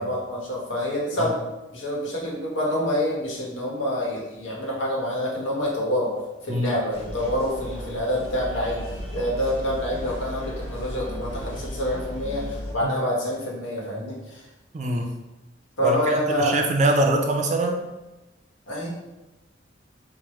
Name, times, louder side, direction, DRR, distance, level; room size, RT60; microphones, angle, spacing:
voice 1, 0.0-1.4 1.7-6.1 6.4-8.9 9.1-14.4 15.8-16.7 18.7-18.9, equal, 90° left, -3 dB, 1.1 m, -27 dB
sound 1, 6.9-12.7, equal, 30° left, 0.7 m, -35 dB
voice 2, 14.7-15.1 15.8-17.8, right 2 dB, 40° right, 3 dB, 0.4 m, -23 dB
4.6 x 2.1 x 3.0 m, 1.0 s
head